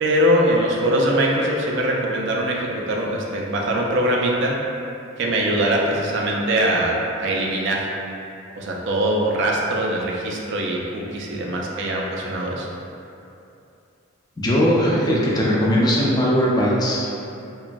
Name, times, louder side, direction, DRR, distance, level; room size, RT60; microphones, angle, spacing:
voice 1, 0.0-4.6 5.2-7.9 8.6-12.7, right 1 dB, 60° right, -2 dB, 0.4 m, -22 dB
voice 2, 14.4-17.1, equal, 20° left, -5 dB, 0.3 m, -19 dB
2.9 x 2.2 x 2.5 m, 2.7 s
head